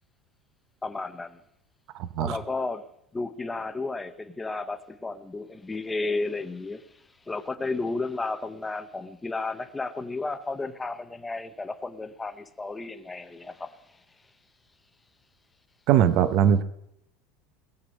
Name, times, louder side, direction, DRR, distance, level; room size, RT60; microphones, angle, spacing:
voice 1, 0.8-1.4 2.2-2.8 3.1-14.0, left 3 dB, 10° left, 0.7 m, -33 dB
voice 2, 15.9-16.6, right 9 dB, 40° right, 0.8 m, -20 dB
20.5 x 8.1 x 5.3 m
cardioid pair, 180°, 0 cm